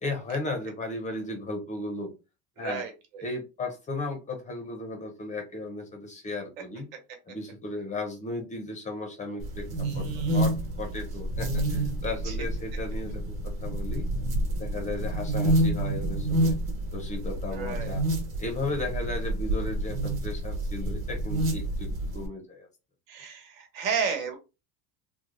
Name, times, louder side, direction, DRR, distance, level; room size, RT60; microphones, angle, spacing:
voice 1, 0.0-2.1 2.6-2.8 3.2-6.9 7.3-14.1 14.5-16.6 16.9-18.0 18.4-22.7, left 2 dB, 20° left, 4 dB, 0.4 m, -35 dB
voice 2, 2.6-3.3 9.8-10.4 12.2-12.4 17.5-18.0 21.5-21.6 23.1-24.4, right 6 dB, 85° right, 4 dB, 1.4 m, -33 dB
sound 1, 9.4-22.3, right 1 dB, 30° right, 1.0 m, -29 dB
3.1 x 2.0 x 3.6 m, 0.28 s
cardioid pair, 165°, 40 cm